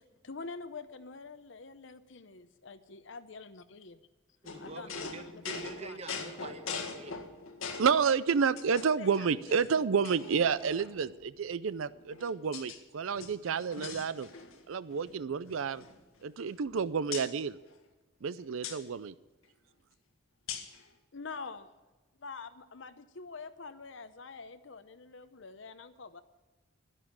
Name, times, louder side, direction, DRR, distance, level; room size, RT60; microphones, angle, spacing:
voice 1, 0.2-4.0 4.6-5.4 5.8-6.0 8.8-9.8 21.1-21.7 22.2-26.2, left 4 dB, 65° left, 0.8 m, -46 dB
sound 1, 4.4-8.0 8.6-9.2 9.6-9.7 10.0-11.1 11.9-12.8 13.1-14.6 14.9-15.1 15.4-16.7 17.1-17.3 18.6-18.8 20.5-20.8, left 5 dB, 90° left, 1.8 m, -42 dB
voice 2, 4.4-7.2, right 3 dB, 30° right, 1.2 m, -45 dB
voice 3, 7.8-14.3 14.7-15.8 16.2-17.6 18.2-19.1, right 6 dB, 80° right, 0.5 m, -30 dB
11.5 x 11.0 x 8.6 m
head